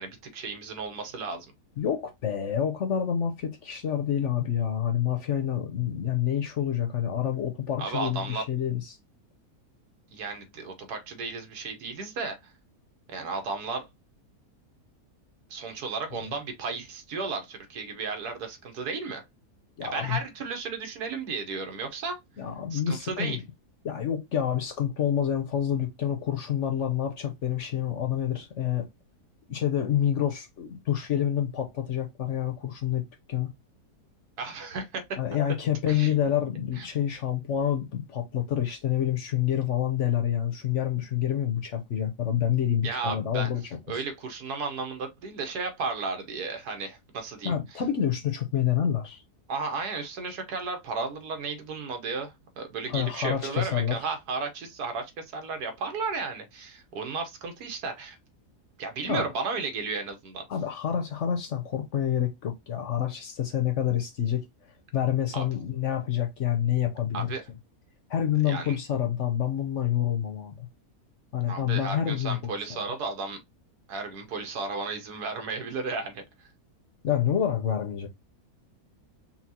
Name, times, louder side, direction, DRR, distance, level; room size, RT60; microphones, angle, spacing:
voice 1, 0.0-1.5 7.8-8.4 10.1-12.4 13.1-13.9 15.5-19.2 19.8-22.2 22.7-23.4 34.4-35.0 35.9-36.2 36.7-36.9 42.8-43.5 43.9-47.5 49.5-58.2 58.8-60.4 65.3-65.5 67.1-67.4 68.5-68.8 71.5-73.4 73.9-76.5, right 4 dB, 85° right, 1.5 m, -34 dB
voice 2, 1.8-9.0 16.2-16.3 19.8-20.2 22.4-23.4 23.8-28.9 29.5-33.5 35.2-43.6 43.9-44.0 47.4-49.2 52.9-54.0 59.0-59.2 60.5-64.4 64.9-67.3 68.1-70.7 71.3-72.5 77.0-78.1, left 10 dB, 60° left, 0.9 m, -28 dB
5.7 x 2.3 x 2.8 m
omnidirectional pair, 1.7 m